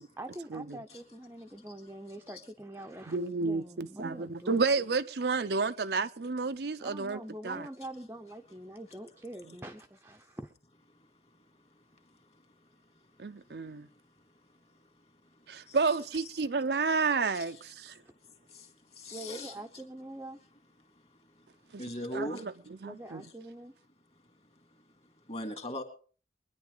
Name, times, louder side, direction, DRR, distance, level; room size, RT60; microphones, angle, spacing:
voice 1, 0.2-4.6 6.8-10.5 19.1-20.4 22.8-23.7, right 1 dB, 10° right, 0.7 m, -44 dB
voice 2, 3.1-7.7 13.2-13.9 15.5-18.0 21.7-21.8 22.1-22.5 22.8-23.2, right 4 dB, 60° right, 0.6 m, -31 dB
voice 3, 19.0-19.5 21.8-22.4 25.3-25.8, left 1 dB, 35° left, 2.4 m, -38 dB
23.5 x 10.5 x 3.9 m
head